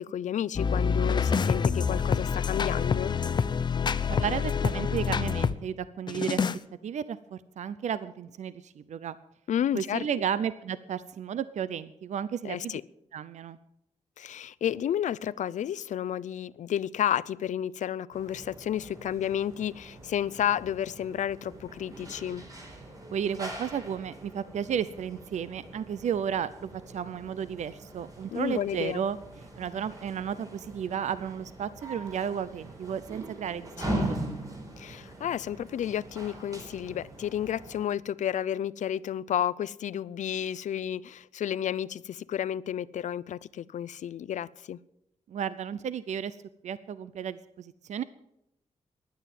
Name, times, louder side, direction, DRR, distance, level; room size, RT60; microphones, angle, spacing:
voice 1, 0.0-3.2 9.5-10.1 12.4-12.8 14.2-22.4 28.3-29.0 33.9-34.1 34.8-44.8, left 10 dB, 85° left, 0.5 m, -31 dB
sound 1, 0.6-5.6 6.1-6.6, left 6 dB, 40° left, 0.6 m, -27 dB
voice 2, 4.2-6.4 6.8-9.2 9.7-12.8 13.1-13.6 23.1-29.2 29.5-34.2 45.3-46.4 46.6-48.0, right 8 dB, 75° right, 0.6 m, -33 dB
sound 2, 18.1-37.8, right 1 dB, 30° right, 4.5 m, -41 dB
16.0 x 11.0 x 7.6 m
wide cardioid pair, 155°, 12 cm